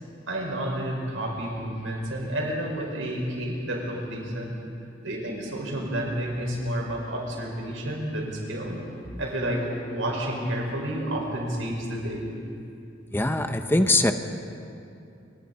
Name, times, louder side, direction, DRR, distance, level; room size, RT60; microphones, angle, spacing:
voice 1, 0.3-4.5 5.0-8.8 9.2-12.4, right 1 dB, 80° right, -1 dB, 5.5 m, -30 dB
voice 2, 13.1-14.1, left 2 dB, 10° left, 7 dB, 0.8 m, -22 dB
29.5 x 25.5 x 4.3 m, 2.6 s
head